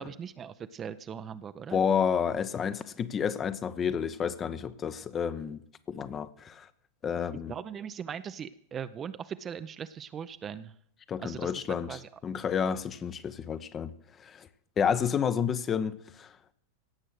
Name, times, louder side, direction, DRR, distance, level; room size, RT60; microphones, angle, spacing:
voice 1, 0.0-1.8 7.5-10.7 11.2-12.1, right 8 dB, 25° right, 0.6 m, -40 dB
voice 2, 1.7-5.6 5.9-6.7 7.0-7.5 11.1-13.9 14.2-14.5 14.8-16.5, left 7 dB, 25° left, 0.8 m, -30 dB
17.0 x 7.6 x 6.5 m
figure-of-eight pair, 90°, 0 cm